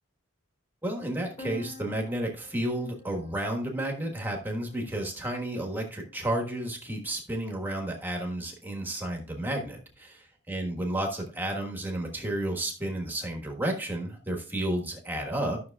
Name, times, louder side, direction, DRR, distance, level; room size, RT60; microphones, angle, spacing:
voice 1, 0.8-15.6, right 1 dB, 10° right, 1 dB, 1.4 m, -32 dB
sound 1, 1.4-5.1, left 2 dB, 25° left, 2.2 m, -48 dB
12.5 x 6.2 x 2.3 m, 0.36 s
head